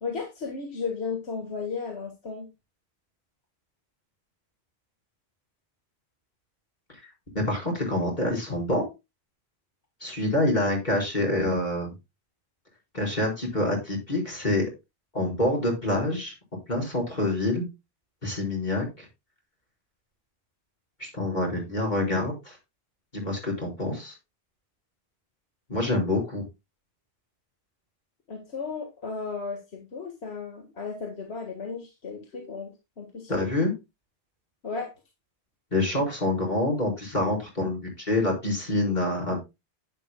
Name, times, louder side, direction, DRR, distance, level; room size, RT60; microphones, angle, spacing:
voice 1, 0.0-2.5 28.3-33.3 34.6-34.9, left 5 dB, 80° left, 3 dB, 1.9 m, -34 dB
voice 2, 7.3-8.9 10.0-11.9 12.9-14.7 15.1-16.3 16.7-17.7 18.2-19.0 21.0-22.5 23.1-24.1 25.7-26.4 33.3-33.7 35.7-39.4, left 1 dB, 45° left, -1 dB, 4.8 m, -26 dB
10.5 x 9.9 x 2.2 m, 0.24 s
omnidirectional pair, 1.1 m